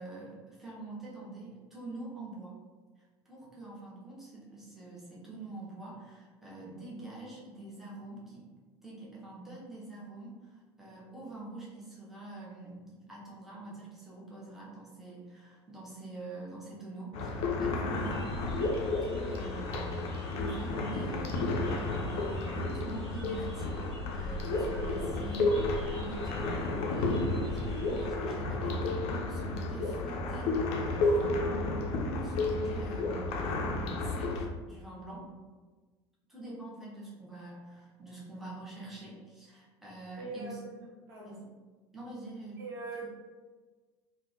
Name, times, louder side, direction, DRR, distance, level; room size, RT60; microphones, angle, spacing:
voice 1, 0.0-2.6 3.3-8.5 8.8-35.3 36.3-40.6 41.2-41.4 41.9-42.6 43.0-43.1, right 2 dB, ahead, -6 dB, 0.8 m, -45 dB
sound 1, 17.1-34.5, left 2 dB, 45° left, 0.4 m, -32 dB
sound 2, 17.9-28.1, right 1 dB, 85° right, 0.6 m, -45 dB
voice 2, 40.2-41.4 42.6-43.1, right 3 dB, 60° right, -4 dB, 0.9 m, -42 dB
3.3 x 2.1 x 2.4 m, 1.4 s
figure-of-eight pair, 70°, 14 cm